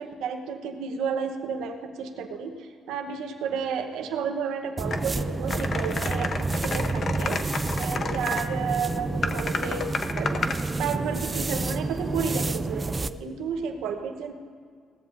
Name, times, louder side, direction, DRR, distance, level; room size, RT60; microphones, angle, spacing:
voice 1, 0.0-9.9 10.2-10.4 10.8-14.3, right 6 dB, 90° right, 4 dB, 1.0 m, -32 dB
sound 1, 4.8-13.2, right 3 dB, 25° right, 0.4 m, -29 dB
sound 2, 4.9-5.0 5.5-8.4 9.2-10.6, left 4 dB, 50° left, 0.9 m, -31 dB
18.5 x 14.5 x 2.6 m, 2.1 s
cardioid pair, 90°, 0 cm